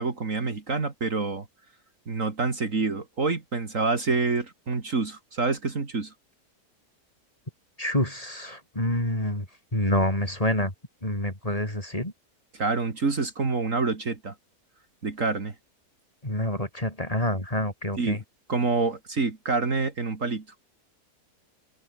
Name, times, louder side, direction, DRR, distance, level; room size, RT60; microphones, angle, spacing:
voice 1, 0.0-1.5 2.1-6.1 12.5-14.3 15.0-15.5 18.0-18.2 18.5-20.6, right 4 dB, 55° right, 2.8 m, -27 dB
voice 2, 7.8-9.4 9.7-10.7 11.0-12.1 16.2-18.2, left 1 dB, 20° left, 5.5 m, -27 dB
open air
omnidirectional pair, 1.7 m